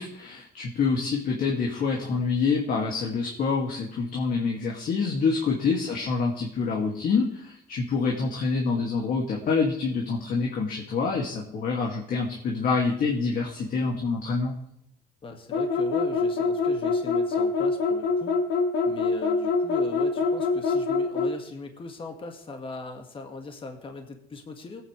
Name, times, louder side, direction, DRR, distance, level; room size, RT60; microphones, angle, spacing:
voice 1, 0.0-14.5, left 4 dB, 55° left, -1 dB, 2.3 m, -26 dB
voice 2, 15.2-18.4 18.9-24.8, left 3 dB, 30° left, 4 dB, 1.9 m, -40 dB
sound 1, 15.5-21.4, left 4 dB, 80° left, 1.6 m, -24 dB
20.0 x 9.1 x 3.3 m, 0.77 s
cardioid pair, 110°, 17 cm